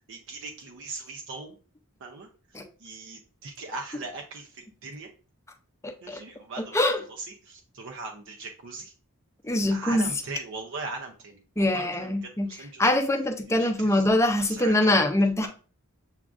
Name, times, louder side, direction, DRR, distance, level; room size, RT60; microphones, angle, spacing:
voice 1, 0.1-1.6 2.0-2.3 2.8-5.1 6.0-8.9 9.7-12.9 13.4-14.1 14.4-14.9 15.4-15.5, right 3 dB, 65° right, 0.5 m, -40 dB
voice 2, 5.8-6.2 6.7-7.0 9.4-10.1 11.6-12.5 12.8-15.5, left 1 dB, 15° left, 0.5 m, -23 dB
7.1 x 2.5 x 2.4 m
head